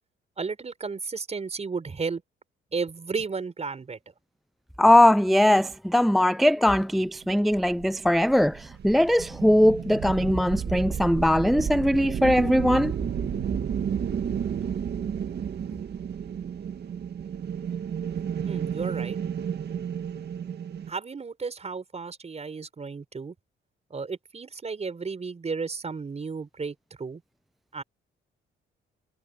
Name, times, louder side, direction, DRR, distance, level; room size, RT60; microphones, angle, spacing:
voice 1, 0.4-2.2 2.7-4.0 18.5-19.2 20.9-23.3 23.9-27.2 27.7-27.8, right 4 dB, 35° right, 5.4 m, -33 dB
voice 2, 4.8-12.9, left 1 dB, ahead, 0.4 m, -20 dB
sound 1, 7.5-20.9, right 8 dB, 55° right, 2.0 m, -32 dB
cardioid pair, 90°, 20 cm